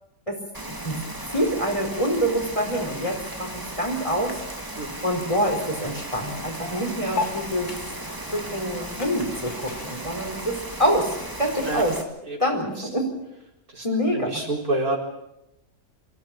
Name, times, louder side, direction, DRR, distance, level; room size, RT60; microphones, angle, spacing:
Rain, 0.5-12.0, right 1 dB, 15° right, 2.0 m, -36 dB
voice 1, 0.7-1.0 1.3-4.4 5.0-7.7 8.3-11.1 11.4-11.9 12.4-13.2 13.8-14.3, equal, 20° left, 2 dB, 4.5 m, -26 dB
sound 1, 6.1-11.5, left 3 dB, 85° left, 3.1 m, -37 dB
voice 2, 14.1-15.0, right 2 dB, 75° right, 0 dB, 4.8 m, -27 dB
24.5 x 15.5 x 8.9 m, 0.86 s
omnidirectional pair, 1.6 m